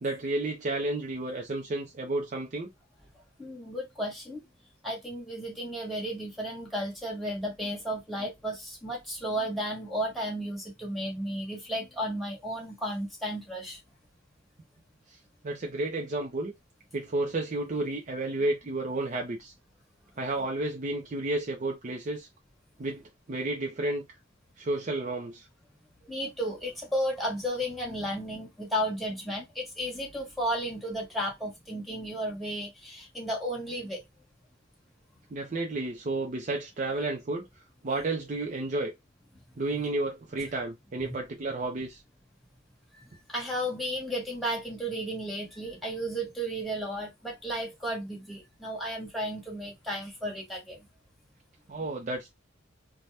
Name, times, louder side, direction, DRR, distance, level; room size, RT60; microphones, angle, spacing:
voice 1, 0.0-2.7 15.4-16.5 16.9-19.5 20.2-22.3 22.8-24.0 24.6-25.5 35.3-37.5 37.8-38.9 39.6-42.0 51.7-52.3, right 2 dB, 40° right, 0.5 m, -31 dB
voice 2, 3.4-4.4 4.8-13.8 26.1-34.0 41.1-41.2 43.3-50.9, equal, ahead, 1.2 m, -33 dB
2.7 x 2.2 x 3.3 m
head